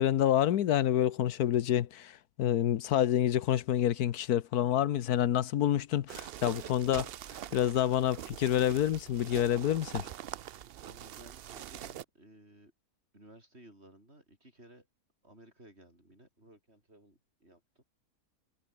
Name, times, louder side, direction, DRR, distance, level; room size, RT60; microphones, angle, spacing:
voice 1, 0.0-7.1 7.5-10.1, left 11 dB, 85° left, 1.4 m, -28 dB
sound 1, 6.1-12.0, right 11 dB, 65° right, 0.6 m, -44 dB
voice 2, 10.8-12.7 13.1-14.9 15.2-17.8, right 1 dB, 45° right, 8.3 m, -57 dB
omnidirectional pair, 1.6 m